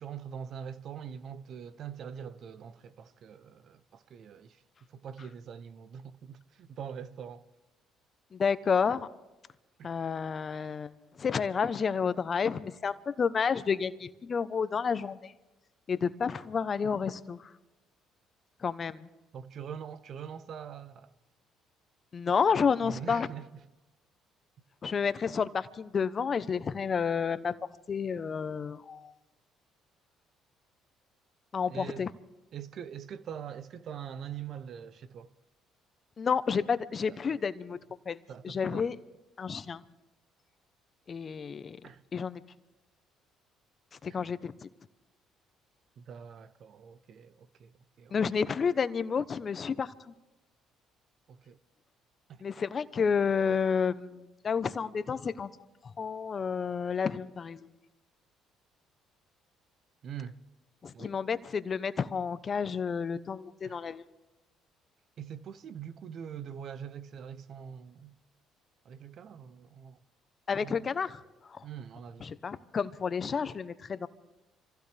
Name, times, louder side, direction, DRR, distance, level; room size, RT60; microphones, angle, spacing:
voice 1, 0.0-4.6 4.9-7.4 9.8-9.9 19.3-21.1 22.8-23.5 31.7-32.1 32.5-35.3 38.3-38.9 41.8-42.0 44.1-44.2 46.0-47.7 48.0-48.2 51.3-51.6 52.3-52.4 60.0-60.4 60.9-61.1 63.6-63.8 65.2-68.1 68.8-70.0 70.6-70.9 71.6-72.3, right 8 dB, 60° right, 0.8 m, -43 dB
voice 2, 8.3-9.1 9.8-10.9 11.2-15.3 15.9-17.5 18.6-19.1 22.1-23.3 24.8-27.5 27.9-29.1 31.5-32.1 36.2-37.8 38.1-38.2 38.4-39.0 39.4-39.8 41.1-41.8 42.1-42.4 44.0-44.7 48.1-50.1 52.4-55.5 55.8-57.6 60.8-64.0 70.5-71.2 71.5-71.6 72.2-74.1, left 6 dB, 45° left, 0.9 m, -30 dB
26.0 x 15.5 x 3.5 m
supercardioid pair, 65°, 0 cm